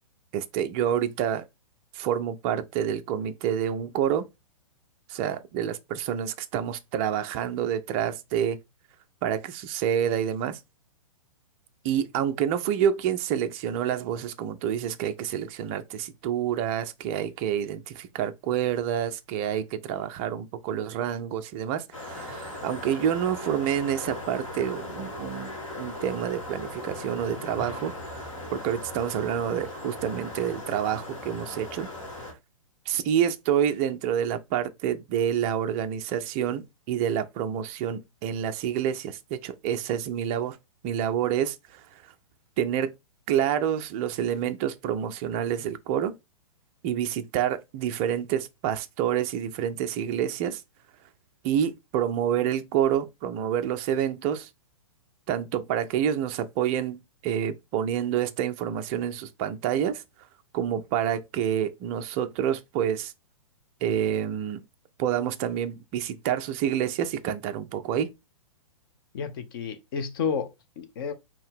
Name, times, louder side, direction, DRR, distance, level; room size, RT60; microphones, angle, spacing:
voice 1, 0.3-1.4 1.9-4.3 5.1-8.6 9.2-10.6 11.8-28.3 28.5-31.9 32.9-40.6 40.8-41.8 42.6-42.9 43.3-46.2 46.8-50.6 51.4-54.5 55.3-60.0 60.5-63.1 63.8-64.6 65.0-68.1, right 9 dB, 20° right, 0.4 m, -28 dB
sound 1, 21.9-32.3, left 2 dB, 60° left, 1.9 m, -38 dB
voice 2, 69.1-71.1, left 6 dB, 40° left, 0.8 m, -31 dB
4.4 x 2.9 x 3.5 m
figure-of-eight pair, 115°, 18 cm